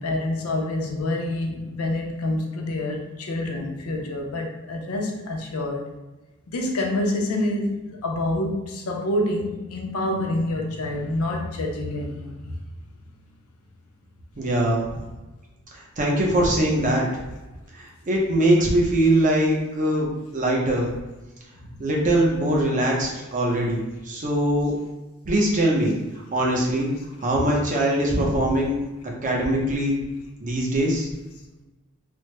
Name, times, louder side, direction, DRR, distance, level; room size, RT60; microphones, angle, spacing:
voice 1, 0.0-5.9 6.5-12.5 21.6-21.7, left 1 dB, 75° left, 2 dB, 0.5 m, -27 dB
voice 2, 14.4-15.0 16.0-17.1 17.8-20.9 21.8-24.7 25.3-25.9 26.3-26.9 27.2-28.8 29.2-30.0 30.4-31.1, right 1 dB, 35° right, -2 dB, 0.6 m, -22 dB
3.2 x 2.0 x 3.1 m, 1.1 s
head